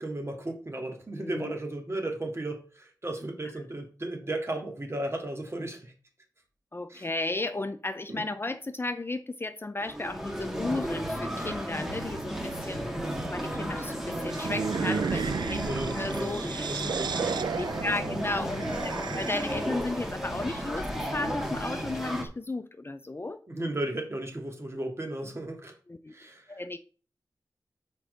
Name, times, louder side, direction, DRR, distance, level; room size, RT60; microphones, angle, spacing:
voice 1, 0.0-5.9 6.9-7.1 12.9-13.3 15.6-17.2 23.5-25.7 26.1-26.8, right 1 dB, 35° right, 2.2 m, -35 dB
voice 2, 1.2-1.6 6.7-13.0 13.3-16.8 17.6-23.4 25.9-26.1 26.5-26.8, left 2 dB, 30° left, 0.6 m, -34 dB
sound 1, 9.8-22.2, equal, 5° right, 1.8 m, -34 dB
sound 2, 14.3-19.8, right 6 dB, 75° right, 0.4 m, -33 dB
6.1 x 4.6 x 5.1 m
cardioid pair, 50°, 8 cm